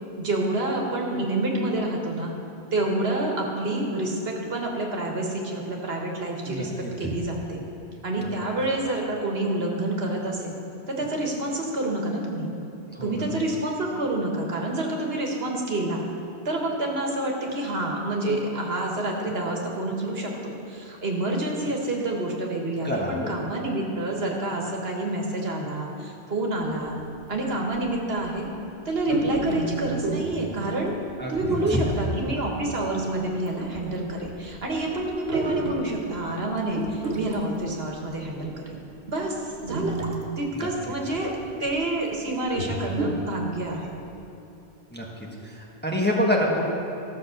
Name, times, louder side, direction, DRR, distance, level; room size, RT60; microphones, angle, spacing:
voice 1, 0.2-2.3 2.7-6.7 7.0-7.6 8.0-10.6 10.9-12.5 13.0-16.1 16.5-26.9 27.3-28.5 28.9-30.9 31.3-38.8 39.1-40.0 40.4-41.3 41.6-43.9, right 2 dB, 65° right, 0 dB, 1.6 m, -28 dB
voice 2, 6.5-6.9 12.9-13.2 22.8-23.3 31.2-31.3 31.7-31.8 40.5-40.7 44.9-45.1 45.4-46.7, left 1 dB, 10° left, -3 dB, 1.3 m, -26 dB
sound 1, 26.9-27.0 27.7-27.9 28.2-28.5 29.0-30.6 31.3-32.2 32.6-32.7 33.5-33.6 33.7-36.4 36.7-38.3 39.0-39.1 39.7-40.4 40.7-40.8 41.4-41.8 42.3-43.4 43.8-43.9 44.1-44.2, right 2 dB, 85° right, 1.5 m, -30 dB
14.0 x 6.1 x 7.0 m, 2.8 s
omnidirectional pair, 1.1 m